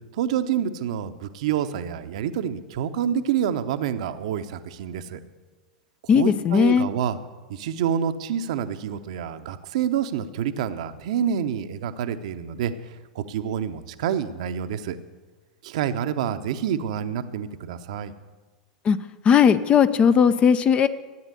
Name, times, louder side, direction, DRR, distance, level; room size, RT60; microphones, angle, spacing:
voice 1, 0.1-5.2 6.0-7.2 7.5-15.0 15.6-18.1, right 9 dB, 55° right, 9 dB, 0.8 m, -27 dB
voice 2, 6.1-6.9 18.8-19.0 19.2-20.9, left 7 dB, 25° left, 13 dB, 0.6 m, -17 dB
13.5 x 9.0 x 8.1 m, 1.3 s
figure-of-eight pair, 90°, 4 cm